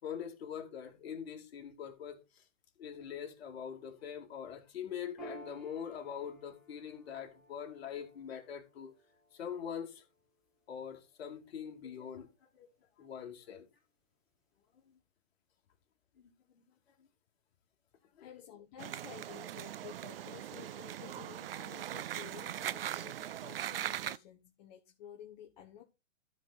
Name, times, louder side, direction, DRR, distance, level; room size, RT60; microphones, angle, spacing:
voice 1, 0.0-2.4 2.8-8.9 9.3-10.0 10.7-12.3 12.5-12.7 13.0-13.7 14.9-15.0 16.2-16.6 17.0-17.1 18.2-18.3, left 8 dB, 50° left, 2.6 m, -43 dB
Piano, 5.2-12.1, equal, ahead, 3.4 m, -55 dB
voice 2, 18.2-25.8, left 10 dB, 30° left, 1.2 m, -52 dB
sound 1, 18.8-24.2, right 11 dB, 50° right, 0.5 m, -40 dB
13.5 x 5.1 x 4.2 m
hypercardioid pair, 145°, 39 cm